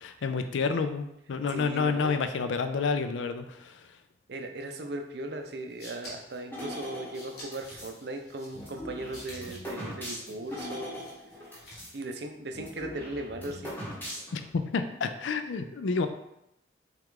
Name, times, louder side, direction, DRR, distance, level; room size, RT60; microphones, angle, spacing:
voice 1, 0.0-3.9 14.3-16.1, left 4 dB, 80° left, 9 dB, 0.4 m, -29 dB
voice 2, 1.5-2.1 4.3-11.1 11.9-13.7, right 2 dB, 60° right, 5 dB, 0.5 m, -38 dB
sound 1, 5.5-12.1, equal, 55° left, 1.7 m, -50 dB
sound 2, 6.5-8.0 8.5-12.0 12.2-12.3 12.5-14.5, equal, 10° left, 1.0 m, -40 dB
5.7 x 2.4 x 3.7 m, 0.82 s
head